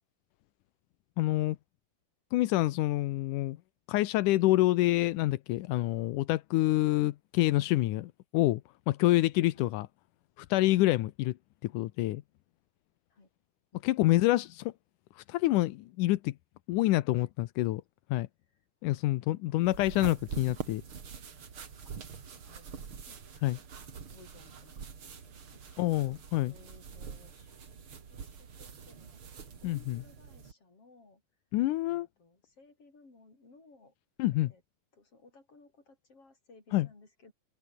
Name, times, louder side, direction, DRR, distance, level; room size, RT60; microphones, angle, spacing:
voice 1, 1.2-1.6 2.3-3.6 3.9-8.6 8.9-9.9 10.4-11.3 11.6-12.2 13.8-14.7 15.2-16.3 16.7-17.8 18.1-18.3 18.8-20.8 23.4-23.6 25.8-26.5 29.6-30.0 31.5-32.1 34.2-34.5 36.7-36.9, left 17 dB, 75° left, 2.0 m, -27 dB
sound 1, 19.6-30.5, right 6 dB, 40° right, 2.8 m, -45 dB
voice 2, 22.4-23.4 23.9-27.8 28.1-29.2 29.6-31.2 31.9-33.9 34.4-34.6 34.9-37.3, left 3 dB, 40° left, 8.1 m, -60 dB
open air
omnidirectional pair, 4.3 m